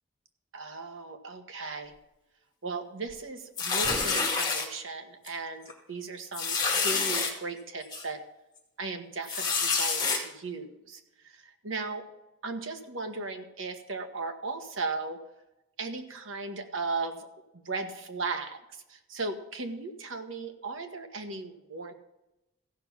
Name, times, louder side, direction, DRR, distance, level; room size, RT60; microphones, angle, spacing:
voice 1, 0.5-1.9 2.6-8.2 8.8-12.0 12.4-15.2 15.8-17.3 17.5-18.6 18.9-21.9, right 3 dB, 85° right, 6 dB, 1.4 m, -37 dB
sound 1, 3.6-4.7 5.3-5.4 5.7-5.8 6.3-7.3 7.9-8.0 9.2-10.2, left 4 dB, 20° left, 2.1 m, -27 dB
15.0 x 6.0 x 7.2 m, 0.93 s
head